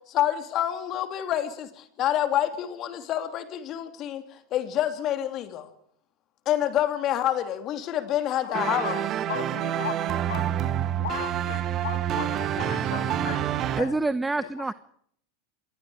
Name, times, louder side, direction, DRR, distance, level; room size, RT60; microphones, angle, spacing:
voice 1, 0.1-5.7 6.4-8.9, left 11 dB, 45° left, 8 dB, 3.0 m, -27 dB
voice 2, 8.3-10.7 11.0-14.0 14.4-14.7, left 10 dB, 80° left, 9 dB, 2.8 m, -37 dB
sound 1, 8.5-13.8, right 10 dB, 40° right, 1.8 m, -27 dB
voice 3, 13.8-14.7, right 3 dB, 10° right, 16 dB, 0.8 m, -26 dB
26.5 x 21.0 x 5.0 m, 0.66 s
hypercardioid pair, 95°, 0 cm